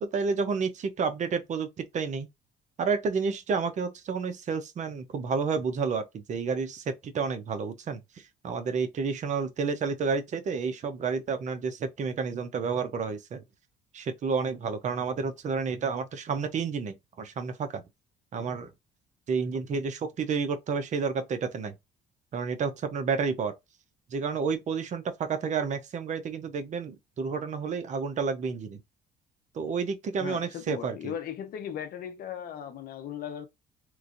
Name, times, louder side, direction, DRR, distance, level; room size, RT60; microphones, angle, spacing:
voice 1, 0.0-2.3 2.8-13.4 13.9-17.8 18.3-18.7 19.3-21.7 22.3-23.5 24.1-28.8 29.5-31.1, right 5 dB, 45° right, 0.7 m, -30 dB
voice 2, 30.2-33.5, left 9 dB, 60° left, 0.7 m, -37 dB
3.0 x 2.5 x 2.5 m
cardioid pair, 110°, 17 cm